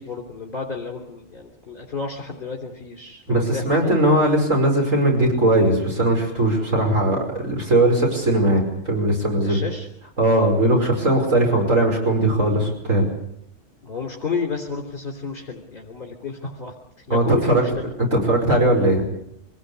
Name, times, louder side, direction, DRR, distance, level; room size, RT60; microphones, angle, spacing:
voice 1, 0.0-4.2 9.4-9.9 13.8-17.9, left 5 dB, 45° left, 1 dB, 3.4 m, -31 dB
voice 2, 3.3-9.6 10.2-13.1 17.1-17.6 18.1-19.0, right 1 dB, 85° right, 1 dB, 5.8 m, -19 dB
26.0 x 18.5 x 8.2 m, 0.75 s
omnidirectional pair, 1.3 m